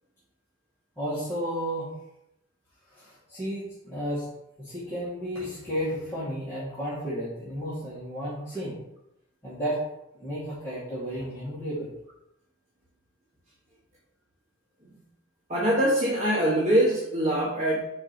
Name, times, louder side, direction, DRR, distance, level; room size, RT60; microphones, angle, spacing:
voice 1, 1.0-1.9 2.9-4.3 4.6-8.8 9.4-9.8 10.2-11.9, equal, 10° left, -12 dB, 2.1 m, -33 dB
voice 2, 15.5-17.9, right 1 dB, 35° right, -5 dB, 1.2 m, -23 dB
4.9 x 4.5 x 6.0 m, 0.86 s
head